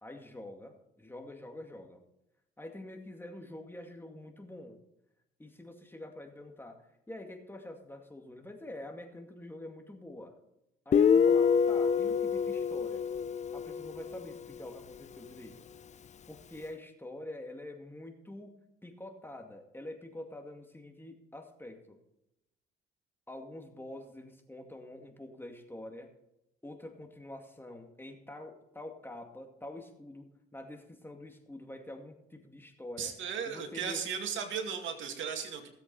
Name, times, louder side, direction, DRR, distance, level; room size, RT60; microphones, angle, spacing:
voice 1, 0.0-2.0 2.6-4.8 5.4-6.8 7.1-10.4 10.9-13.0 13.5-15.6 16.3-18.5 18.8-22.0 23.3-26.1 26.6-33.1 33.5-34.2, left 1 dB, 10° left, 3 dB, 2.3 m, -46 dB
Guitar, 10.9-14.4, left 7 dB, 35° left, 0.5 m, -26 dB
voice 2, 33.0-35.7, right 7 dB, 75° right, 5 dB, 2.3 m, -36 dB
17.0 x 8.0 x 4.1 m, 0.84 s
cardioid pair, 90°, 20 cm